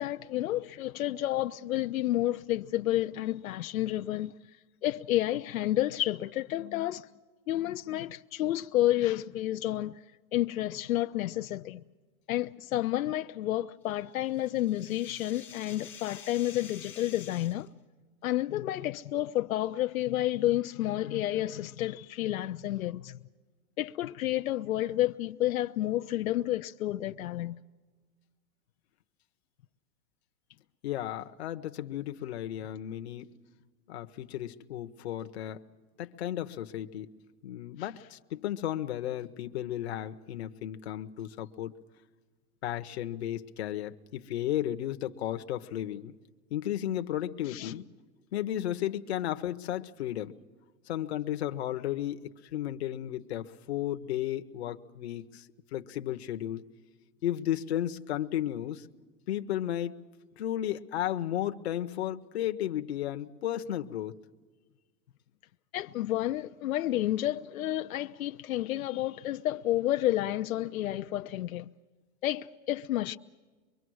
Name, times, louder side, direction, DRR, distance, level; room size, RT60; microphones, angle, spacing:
voice 1, 0.0-4.3 4.8-7.1 7.5-10.0 10.3-11.8 12.3-17.7 18.2-23.2 23.8-27.6 37.8-37.9 47.5-47.7 65.7-71.7 72.2-73.2, left 14 dB, 70° left, 0.6 m, -30 dB
sound 1, 13.9-17.7, left 8 dB, 5° left, 0.7 m, -49 dB
voice 2, 30.8-33.3 33.9-35.6 36.0-37.1 37.4-41.7 42.6-46.2 46.5-47.9 48.3-50.3 50.9-52.2 52.5-55.5 55.7-56.6 57.2-58.9 59.3-60.0 60.4-64.2, left 12 dB, 45° left, 0.9 m, -34 dB
24.5 x 23.5 x 6.3 m
supercardioid pair, 180°, 44 cm